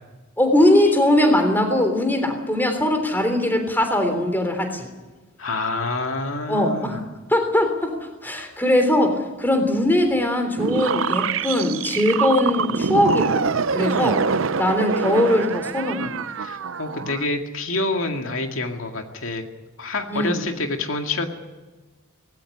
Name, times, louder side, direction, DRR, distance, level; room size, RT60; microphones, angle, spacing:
voice 1, 0.4-4.9 6.5-7.0 7.3-14.2 14.6-16.1 20.1-20.4, left 1 dB, 10° left, 6 dB, 3.4 m, -20 dB
voice 2, 5.4-7.0 16.4-19.4 19.8-21.3, left 2 dB, 75° left, 4 dB, 2.2 m, -27 dB
sound 1, 10.6-17.3, right 5 dB, 70° right, 0.6 m, -25 dB
19.5 x 17.0 x 9.7 m, 1.2 s
head